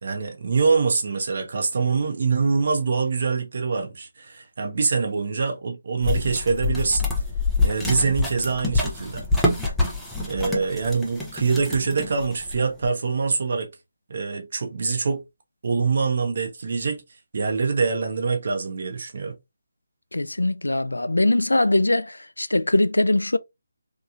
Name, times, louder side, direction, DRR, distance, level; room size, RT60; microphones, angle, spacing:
voice 1, 0.0-7.1 7.6-9.2 10.3-13.7 14.1-15.2 15.6-17.0 17.3-19.4, right 4 dB, 55° right, 0.8 m, -24 dB
sound 1, 6.0-12.8, left 3 dB, 5° left, 0.6 m, -26 dB
voice 2, 20.1-23.4, left 2 dB, 90° left, 0.3 m, -21 dB
2.9 x 2.3 x 2.4 m
figure-of-eight pair, 155°, 0 cm